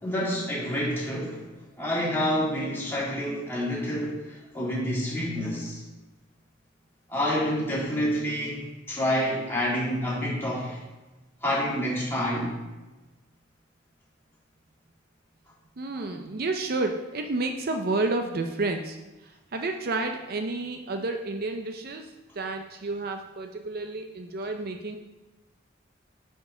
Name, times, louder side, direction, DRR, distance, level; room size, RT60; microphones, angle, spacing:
voice 1, 0.0-1.5 1.8-5.8 7.1-8.6 8.9-10.8 11.4-12.5, equal, 10° left, -7 dB, 2.7 m, -28 dB
voice 2, 15.8-19.0 19.5-22.1 22.4-25.0, right 2 dB, 55° right, 5 dB, 0.6 m, -30 dB
9.8 x 5.2 x 3.8 m, 1.1 s
head